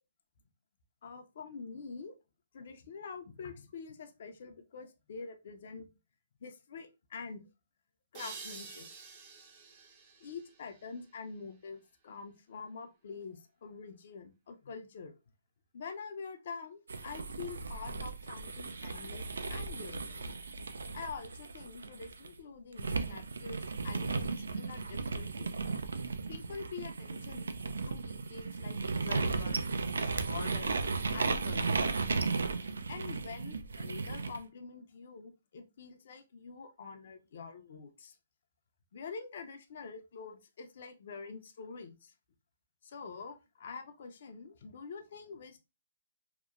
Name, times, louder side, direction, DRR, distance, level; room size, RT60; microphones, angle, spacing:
voice 1, 1.0-2.1 2.5-5.9 6.4-7.4 8.1-8.9 10.2-15.1 15.7-19.2 19.5-20.3 20.9-25.6 26.3-27.5 27.9-29.6 30.2-31.9 32.9-38.2 38.9-42.1 42.8-45.6, left 5 dB, 60° left, 7 dB, 0.5 m, -46 dB
sound 1, 8.1-11.5, right 5 dB, 35° right, 0.6 m, -49 dB
sound 2, 16.9-22.3 22.8-34.4, right 4 dB, 85° right, 0.3 m, -35 dB
2.8 x 2.1 x 2.4 m, 0.27 s
hypercardioid pair, 140°, 0 cm